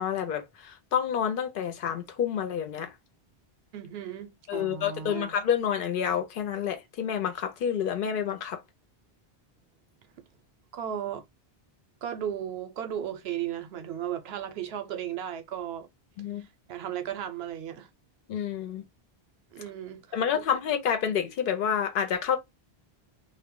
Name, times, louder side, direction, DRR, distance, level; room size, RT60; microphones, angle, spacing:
voice 1, 0.0-2.9 4.5-8.6 16.2-16.5 18.3-18.8 20.1-22.4, left 8 dB, 60° left, 0.7 m, -28 dB
voice 2, 3.7-5.4 10.7-11.3 12.0-15.9 16.4-17.9 19.5-20.4, right 10 dB, 75° right, 0.8 m, -35 dB
2.1 x 2.1 x 3.6 m
omnidirectional pair, 1.0 m